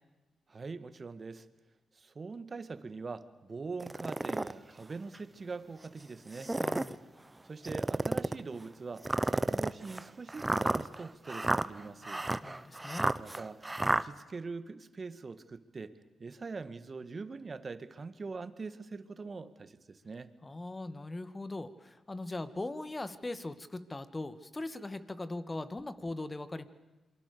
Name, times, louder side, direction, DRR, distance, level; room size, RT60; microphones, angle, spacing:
voice 1, 0.5-1.5 1.9-6.5 7.4-12.3 13.2-15.9 16.2-20.3, right 4 dB, 45° right, 12 dB, 1.9 m, -43 dB
sound 1, 3.8-4.5 5.1-5.2 6.3-7.0 7.6-8.4 9.0-14.0, right 2 dB, 20° right, 1.0 m, -31 dB
voice 2, 6.6-7.0 12.4-13.1 20.4-26.7, left 2 dB, 25° left, 12 dB, 2.0 m, -40 dB
28.0 x 24.0 x 7.0 m, 1.1 s
supercardioid pair, 55°, 0 cm